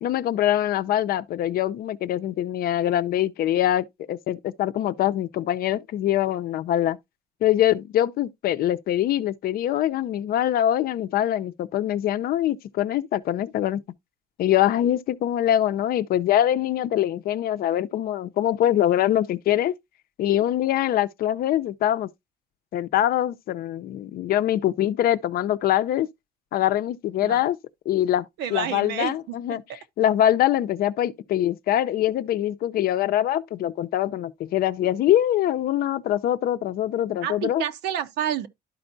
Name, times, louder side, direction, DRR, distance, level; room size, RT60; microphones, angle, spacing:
voice 1, 0.0-7.0 7.4-13.8 14.4-19.7 20.2-22.1 22.7-26.1 26.5-27.6 27.9-29.6 30.0-37.6, left 12 dB, 65° left, 0.6 m, -23 dB
voice 2, 28.4-29.6 37.2-38.5, right 10 dB, 85° right, 0.9 m, -29 dB
12.0 x 4.4 x 2.6 m
cardioid pair, 110°, 17 cm